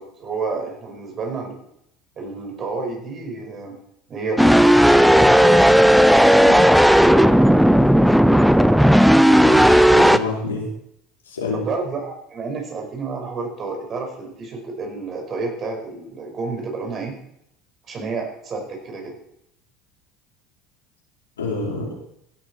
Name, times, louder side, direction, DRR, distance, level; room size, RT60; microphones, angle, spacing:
voice 1, 0.0-1.6 2.2-3.8 4.1-5.9 8.5-9.0 11.5-17.1 17.9-19.2, right 4 dB, 40° right, 2 dB, 5.6 m, -30 dB
sound 1, 4.4-10.2, equal, ahead, 0.7 m, -13 dB
voice 2, 9.4-10.7 11.3-11.6 21.4-21.9, left 3 dB, 80° left, -3 dB, 5.1 m, -28 dB
16.5 x 13.0 x 4.6 m, 0.74 s
figure-of-eight pair, 65°, 0 cm